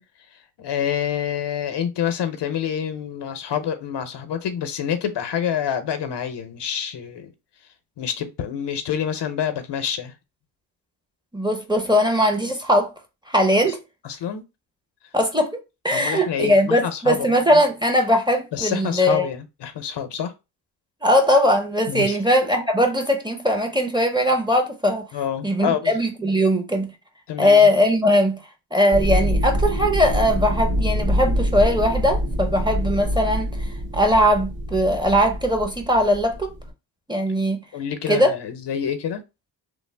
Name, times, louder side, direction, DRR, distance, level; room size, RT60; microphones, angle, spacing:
voice 1, 0.6-7.3 8.0-10.1 14.0-14.4 15.9-17.6 18.5-20.3 21.9-22.2 25.1-26.0 27.3-27.7 37.7-39.2, left 8 dB, 70° left, 0.7 m, -27 dB
voice 2, 11.3-12.9 13.3-13.8 15.1-15.6 15.8-19.3 21.0-25.0 25.4-26.9 27.4-28.4 28.7-33.7 33.9-36.5 37.1-37.6 38.1-38.3, equal, 10° right, 0.7 m, -20 dB
sound 1, 28.9-36.7, equal, 55° right, 1.7 m, -25 dB
3.2 x 2.0 x 3.2 m
cardioid pair, 65°, 43 cm